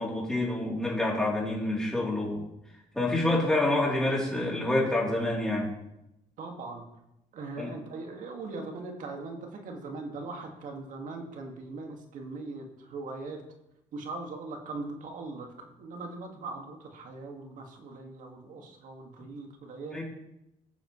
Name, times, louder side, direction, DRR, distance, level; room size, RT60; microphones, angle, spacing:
voice 1, 0.0-2.4 2.9-5.7 7.6-7.7 19.9-20.0, left 2 dB, 5° left, -4 dB, 3.3 m, -27 dB
voice 2, 6.4-6.9 7.3-13.4 13.9-20.0, right 3 dB, 65° right, 2 dB, 2.0 m, -40 dB
15.5 x 7.3 x 3.2 m, 0.86 s
cardioid pair, 105°, 14 cm